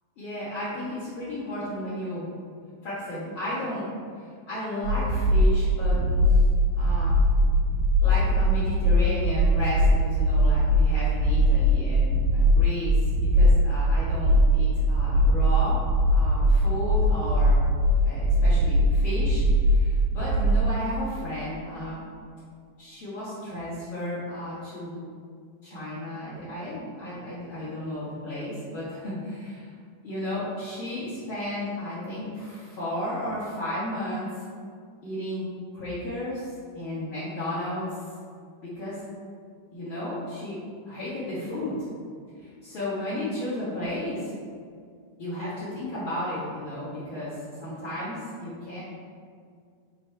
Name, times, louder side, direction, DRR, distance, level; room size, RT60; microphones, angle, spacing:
voice 1, 0.2-2.3 2.8-3.9 4.2-6.5 6.8-7.2 8.0-15.8 16.1-17.6 18.0-22.0 22.8-25.0 25.6-29.7 30.0-34.4 35.0-37.9 38.6-39.0 39.7-40.6 40.9-41.8 42.4-44.3 45.2-48.8, left 1 dB, 45° left, -12 dB, 1.8 m, -33 dB
sound 1, 4.8-20.7, equal, 85° right, 1.9 m, -21 dB
7.6 x 3.3 x 4.5 m, 2.2 s
omnidirectional pair, 4.4 m